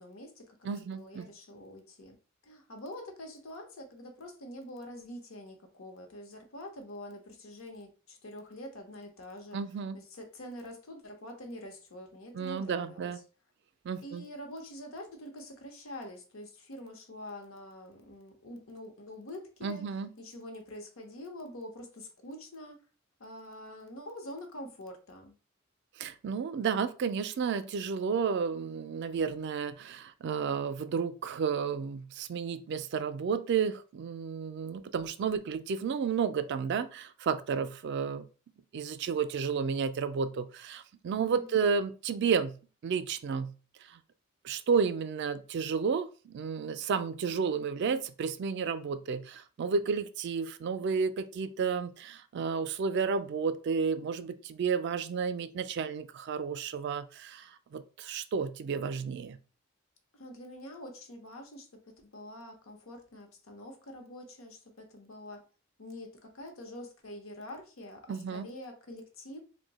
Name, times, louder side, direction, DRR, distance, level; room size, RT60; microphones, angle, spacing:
voice 1, 0.0-2.2 2.4-9.6 9.9-13.2 14.0-19.9 20.2-22.8 23.2-25.4 41.2-41.6 60.1-65.4 65.8-69.4, left 1 dB, 90° left, 0.8 m, -46 dB
voice 2, 0.6-1.3 9.5-10.0 12.3-13.2 13.8-14.2 19.6-20.1 26.0-38.3 38.7-42.6 42.8-43.5 43.9-44.0 44.4-59.4 68.1-68.5, right 6 dB, 55° right, 0.3 m, -32 dB
2.6 x 2.1 x 3.9 m
head